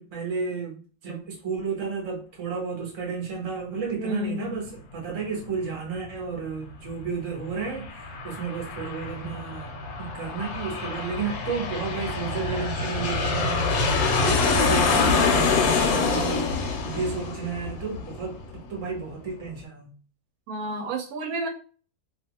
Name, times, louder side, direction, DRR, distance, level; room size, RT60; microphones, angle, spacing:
voice 1, 0.0-16.5 16.8-19.9, right 5 dB, 35° right, 0.6 m, -32 dB
voice 2, 4.0-4.6 20.5-21.5, right 2 dB, 75° right, 1.0 m, -31 dB
Aircraft, 7.5-18.7, left 4 dB, 75° left, 1.0 m, -26 dB
2.5 x 2.4 x 2.8 m
omnidirectional pair, 1.6 m